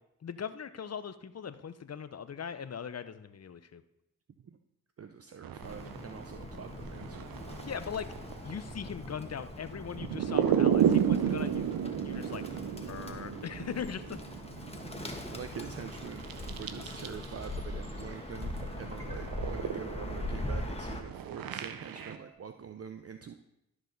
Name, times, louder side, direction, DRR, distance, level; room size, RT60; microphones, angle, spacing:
voice 1, 0.2-3.8 7.6-8.1 8.4-12.4 12.9-14.2, left 7 dB, 45° left, 13 dB, 0.6 m, -40 dB
voice 2, 5.0-7.3 15.3-16.3 16.6-23.3, right 7 dB, 45° right, 7 dB, 0.6 m, -44 dB
sound 1, 5.4-17.6 17.8-22.2, right 9 dB, 85° right, 0.6 m, -33 dB
Bird, 5.6-21.0, left 1 dB, 15° left, 1.4 m, -41 dB
sound 2, 18.6-20.7 21.9-22.3, right 1 dB, 20° right, 2.5 m, -54 dB
12.5 x 4.8 x 3.9 m, 0.85 s
cardioid pair, 40°, 34 cm